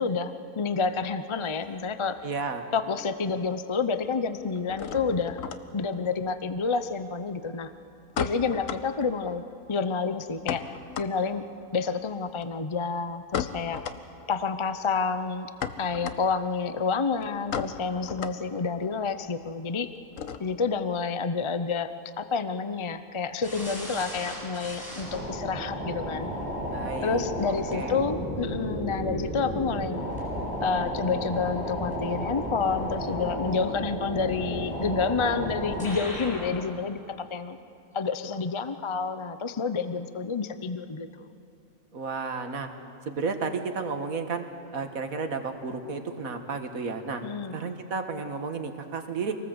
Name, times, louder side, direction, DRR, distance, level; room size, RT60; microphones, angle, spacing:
voice 1, 0.0-2.2 2.7-5.4 5.7-7.7 8.2-9.4 9.7-10.6 11.0-11.4 11.7-13.8 14.3-15.5 15.8-19.9 20.4-21.9 22.2-26.3 27.0-30.0 30.6-37.6 37.9-41.1 47.2-47.6, left 5 dB, 30° left, 11 dB, 0.5 m, -29 dB
sound 1, 0.9-2.5 2.8-3.5 3.7-20.8, left 7 dB, 70° left, 1.3 m, -38 dB
voice 2, 2.2-2.7 26.7-27.3 27.7-28.0 41.9-42.7 43.1-44.4 44.7-47.2 47.5-49.4, right 4 dB, 75° right, 6 dB, 1.9 m, -32 dB
sound 2, 23.4-36.6, equal, 5° left, 7.8 m, -33 dB
25.5 x 19.0 x 8.0 m, 2.6 s
omnidirectional pair, 1.5 m